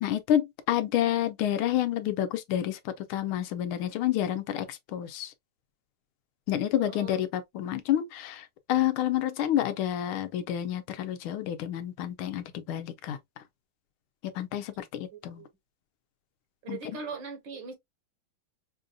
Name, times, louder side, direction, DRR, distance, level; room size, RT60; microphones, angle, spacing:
voice 1, 0.0-5.3 6.5-13.2 14.3-15.4 16.7-16.8, left 11 dB, 85° left, 1.5 m, -29 dB
voice 2, 6.8-7.2 14.8-15.5 16.6-17.7, right 4 dB, 65° right, 2.0 m, -41 dB
5.4 x 2.6 x 2.3 m
omnidirectional pair, 2.3 m